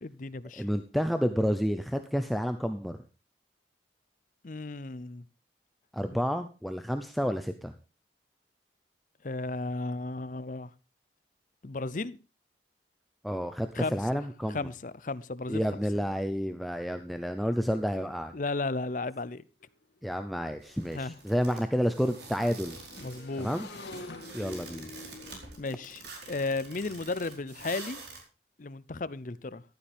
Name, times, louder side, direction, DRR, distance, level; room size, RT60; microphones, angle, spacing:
voice 1, 0.0-0.7 4.4-5.2 9.2-10.7 11.6-12.2 13.7-14.2 14.5-15.6 18.3-19.4 20.9-21.2 23.0-23.5 25.6-28.0 28.6-29.6, left 3 dB, 45° left, 0.6 m, -34 dB
voice 2, 0.6-3.0 5.9-7.7 13.2-14.7 15.5-18.3 20.0-22.8 23.4-23.7 24.3-24.9, equal, ahead, 0.6 m, -30 dB
Motorcycle / Engine, 19.6-19.7 20.0-27.1, left 2 dB, 80° left, 2.5 m, -48 dB
sound 1, 20.6-28.2, right 3 dB, 65° right, 4.3 m, -47 dB
14.5 x 11.5 x 3.5 m
head